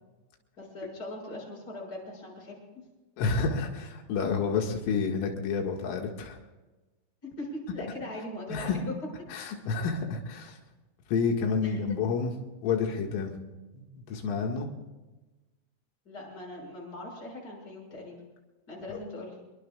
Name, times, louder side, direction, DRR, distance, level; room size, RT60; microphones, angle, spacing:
voice 1, 0.6-2.9 7.2-8.9 11.6-11.8 16.1-18.2 18.7-19.4, left 1 dB, 20° left, -2 dB, 6.7 m, -40 dB
voice 2, 3.2-6.4 8.5-8.8 9.3-10.6 11.1-12.3 12.6-13.4 14.1-14.7 18.9-19.0, left 5 dB, 90° left, 1 dB, 4.4 m, -29 dB
26.5 x 22.5 x 2.4 m, 1.2 s
omnidirectional pair, 5.6 m